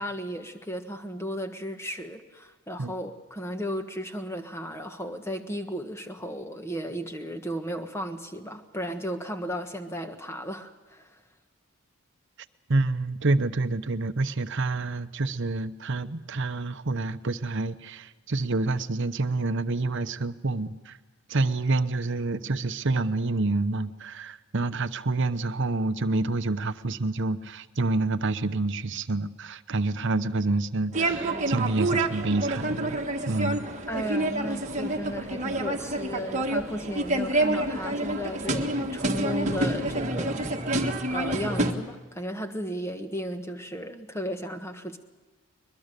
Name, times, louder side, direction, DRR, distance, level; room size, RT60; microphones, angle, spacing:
voice 1, 0.0-11.1 33.9-45.0, equal, 10° left, 7 dB, 1.4 m, -35 dB
voice 2, 12.7-21.0 21.3-33.0 33.3-33.7, right 2 dB, 55° right, 11 dB, 0.9 m, -28 dB
sound 1, 30.9-41.7, right 2 dB, 30° right, 1.6 m, -28 dB
22.0 x 21.5 x 6.8 m, 1.3 s
head